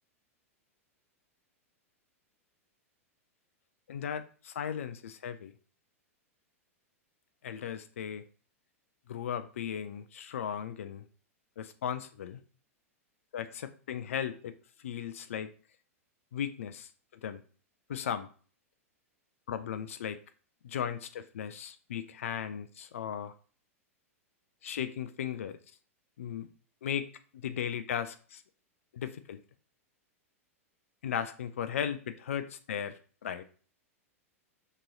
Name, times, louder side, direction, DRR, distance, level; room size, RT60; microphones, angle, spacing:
voice 1, 3.9-5.5 7.4-8.2 9.1-11.0 11.6-12.4 13.3-14.5 14.8-15.5 16.3-16.9 17.2-17.4 17.9-18.3 19.5-20.2 20.6-23.3 24.6-25.6 26.2-26.5 26.8-27.1 27.3-28.4 28.9-29.4 31.0-33.4, left 8 dB, 65° left, 11 dB, 0.4 m, -36 dB
6.0 x 3.0 x 2.6 m, 0.41 s
figure-of-eight pair, 95°, 8 cm